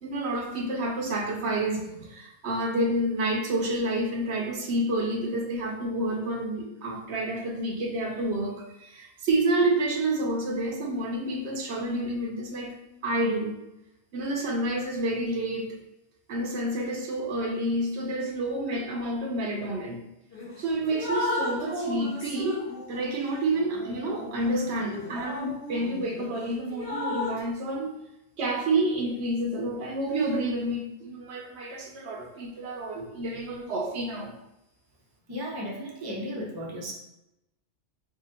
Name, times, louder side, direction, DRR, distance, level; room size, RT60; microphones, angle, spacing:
voice 1, 0.0-12.7 13.0-13.5 14.1-15.7 16.3-20.0 20.6-22.6 22.9-27.9 28.4-34.3, right 1 dB, 70° right, 0 dB, 0.9 m, -29 dB
Drip, 20.3-20.5 20.9-26.3 26.7-27.4, left 1 dB, 75° left, 1.7 m, -34 dB
voice 2, 35.3-36.9, equal, 30° right, -3 dB, 0.5 m, -35 dB
3.6 x 2.1 x 3.8 m, 0.88 s
omnidirectional pair, 1.2 m